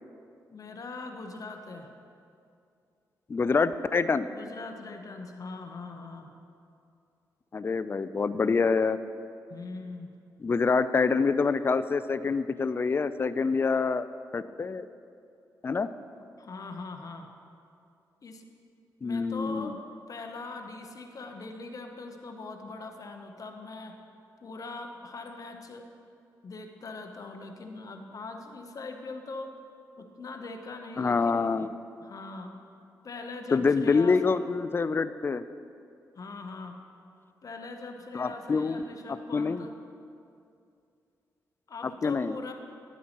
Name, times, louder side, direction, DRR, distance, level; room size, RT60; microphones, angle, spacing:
voice 1, 0.5-1.9 4.2-6.3 9.5-10.1 16.4-17.3 18.2-18.5 19.0-19.8 20.1-23.9 24.4-25.9 26.4-29.5 30.0-31.4 32.0-32.6 33.0-34.2 36.1-36.8 37.4-39.8 41.7-42.5, left 3 dB, 50° left, 4 dB, 0.8 m, -41 dB
voice 2, 3.3-4.3 7.5-9.0 10.4-14.1 14.3-14.9 15.6-15.9 19.0-19.7 31.0-31.7 33.5-35.4 38.1-38.8 39.1-39.6 41.8-42.4, left 4 dB, 30° left, 13 dB, 0.3 m, -26 dB
11.0 x 8.1 x 3.0 m, 2.5 s
cardioid pair, 60°, 7 cm